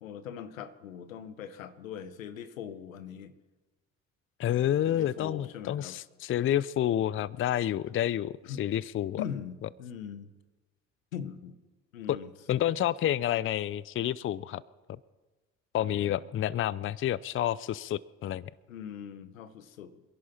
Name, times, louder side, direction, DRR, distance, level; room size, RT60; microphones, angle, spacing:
voice 1, 0.0-3.3 4.8-6.0 8.4-8.7 9.2-10.3 11.1-11.6 11.9-12.3 16.2-16.3 18.7-20.0, left 8 dB, 90° left, 12 dB, 1.1 m, -41 dB
voice 2, 4.4-9.2 12.1-12.2 12.5-14.6 15.7-18.5, left 11 dB, 35° left, 21 dB, 0.5 m, -29 dB
26.5 x 11.0 x 4.3 m, 1.2 s
hypercardioid pair, 60°, 39 cm